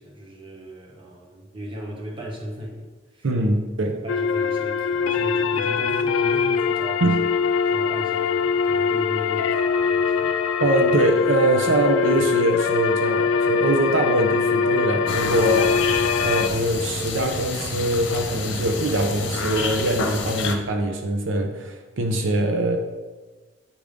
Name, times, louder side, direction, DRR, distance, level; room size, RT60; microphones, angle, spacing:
voice 1, 0.0-3.6 3.8-7.3 7.6-10.3, equal, 25° right, -1 dB, 1.1 m, -36 dB
voice 2, 3.2-4.0 7.0-7.2 10.6-15.9 16.2-22.8, right 1 dB, 75° right, 4 dB, 0.6 m, -23 dB
sound 1, 4.1-16.5, left 6 dB, 85° left, 0.4 m, -22 dB
sound 2, 15.1-20.6, left 3 dB, 70° left, 0.8 m, -29 dB
8.6 x 3.5 x 5.1 m, 1.3 s
head